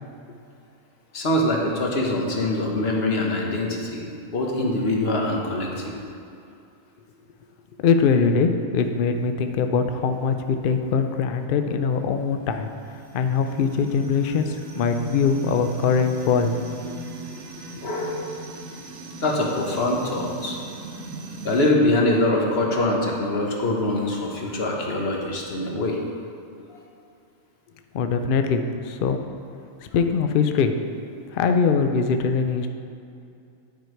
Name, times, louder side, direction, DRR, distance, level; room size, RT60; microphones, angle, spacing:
voice 1, 1.1-5.9 17.8-18.2 19.2-20.6 21.4-26.0, left 1 dB, 50° left, -1 dB, 1.2 m, -24 dB
voice 2, 7.8-12.7 13.1-16.6 16.8-17.0 27.9-29.2 29.8-30.7 31.3-32.7, left 5 dB, 65° left, 7 dB, 0.5 m, -22 dB
sound 1, 11.9-21.7, right 3 dB, 75° right, 1.2 m, -39 dB
9.2 x 4.8 x 4.5 m, 2.6 s
omnidirectional pair, 1.4 m